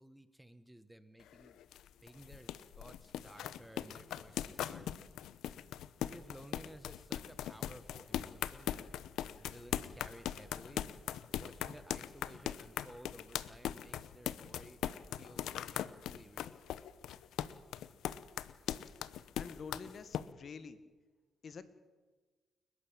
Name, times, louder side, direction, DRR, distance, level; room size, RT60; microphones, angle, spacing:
voice 1, 0.0-1.6 2.0-5.1 6.0-8.9 9.4-10.9 11.3-14.8 15.2-16.6, right 1 dB, 5° right, 12 dB, 1.3 m, -55 dB
sound 1, 1.2-20.2, left 11 dB, 80° left, 0.8 m, -40 dB
voice 2, 19.4-20.8 21.4-21.8, left 5 dB, 50° left, 12 dB, 1.6 m, -48 dB
29.5 x 12.0 x 8.7 m, 1.3 s
cardioid pair, 90°, 0 cm